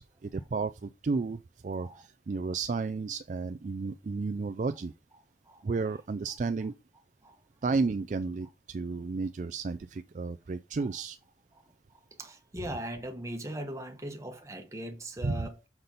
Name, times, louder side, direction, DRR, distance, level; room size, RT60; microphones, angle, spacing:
voice 1, 0.0-4.9 5.6-6.7 7.6-11.2 15.2-15.5, right 4 dB, 45° right, 0.4 m, -32 dB
voice 2, 12.2-15.7, right 1 dB, 15° right, 1.3 m, -39 dB
6.8 x 5.8 x 4.0 m
head